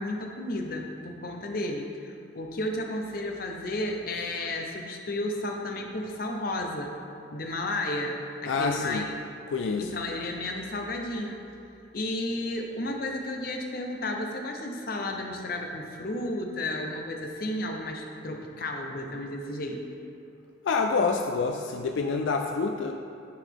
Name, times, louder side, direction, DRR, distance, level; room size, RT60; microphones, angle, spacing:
voice 1, 0.0-6.9 7.3-9.2 9.8-11.4 11.9-19.8, left 1 dB, 50° left, 2 dB, 0.7 m, -33 dB
voice 2, 8.5-9.0 9.5-9.9 20.6-22.9, left 4 dB, 80° left, 4 dB, 0.4 m, -27 dB
11.0 x 4.0 x 3.6 m, 2.6 s
head